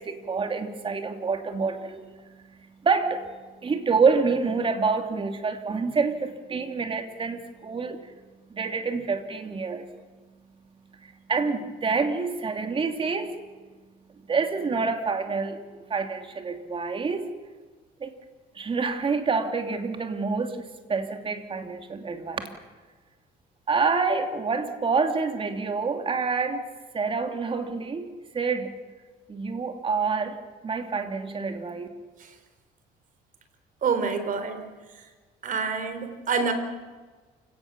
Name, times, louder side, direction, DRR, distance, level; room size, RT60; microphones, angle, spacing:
voice 1, 0.0-8.1 8.5-9.9 11.0-13.4 14.3-15.6 15.9-17.3 18.0-18.1 18.5-22.5 23.7-26.6 26.9-28.1 28.3-28.7 29.3-30.4 30.6-31.9, right 4 dB, 30° right, 5 dB, 2.9 m, -27 dB
voice 2, 33.8-34.6 35.4-36.5, right 5 dB, 50° right, 9 dB, 4.0 m, -27 dB
29.0 x 17.5 x 7.2 m, 1.4 s
cardioid pair, 110°, 17 cm